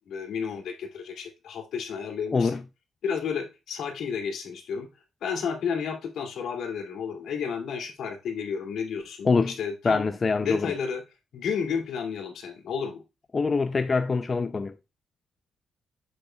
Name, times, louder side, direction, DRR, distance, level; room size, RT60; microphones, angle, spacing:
voice 1, 0.1-2.6 3.0-4.9 5.2-10.1 10.4-11.0 11.3-13.0, left 6 dB, 70° left, 2.4 m, -32 dB
voice 2, 2.3-2.6 9.2-9.5 9.8-10.7 13.3-14.7, left 4 dB, 25° left, 0.4 m, -24 dB
7.9 x 6.7 x 2.3 m
cardioid pair, 170°, 0 cm